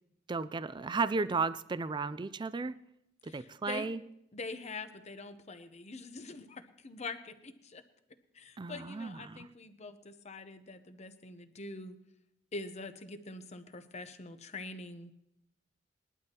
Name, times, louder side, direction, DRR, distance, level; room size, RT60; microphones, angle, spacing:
voice 1, 0.3-2.8 3.2-4.0 8.6-9.4, right 4 dB, 25° right, 15 dB, 0.4 m, -34 dB
voice 2, 3.2-3.9 4.3-7.8 8.3-12.0 12.5-15.1, left 3 dB, 35° left, 10 dB, 0.8 m, -44 dB
20.5 x 12.0 x 3.0 m, 0.78 s
head